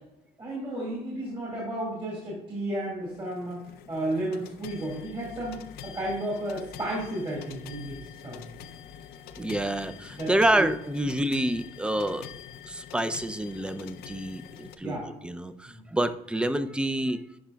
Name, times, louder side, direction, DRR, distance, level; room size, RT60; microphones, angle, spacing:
voice 1, 0.4-8.4 10.2-10.7 14.8-15.1 15.7-15.8, right 1 dB, 30° right, -4 dB, 1.9 m, -33 dB
sound 1, 3.0-14.8, left 9 dB, 70° left, 0.5 m, -45 dB
voice 2, 9.4-12.3 12.7-17.2, right 1 dB, 5° right, 11 dB, 0.3 m, -28 dB
10.0 x 5.0 x 2.2 m, 0.90 s
cardioid pair, 110°, 17 cm